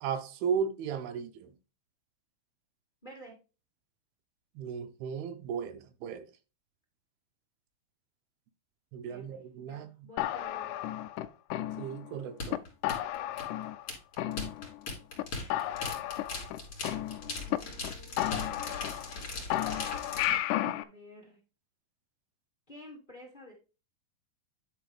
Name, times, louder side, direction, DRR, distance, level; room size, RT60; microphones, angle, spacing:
voice 1, 0.0-1.5 4.6-6.3 8.9-9.9 11.8-12.6 20.3-20.4 20.7-20.8, right 7 dB, 90° right, 2.8 m, -35 dB
voice 2, 3.0-3.3 9.0-10.9 15.3-15.9 17.4-18.3 20.7-21.4 22.7-23.5, equal, 15° left, 1.9 m, -51 dB
sound 1, 10.2-12.1 12.5-12.6 12.8-13.9 14.2-14.9 15.2-15.3 15.5-17.6 17.8-17.9 18.2-19.2 19.5-20.8, left 14 dB, 90° left, 1.7 m, -33 dB
sound 2, 12.4-20.4, left 3 dB, 40° left, 3.4 m, -39 dB
10.0 x 3.8 x 4.8 m
omnidirectional pair, 4.2 m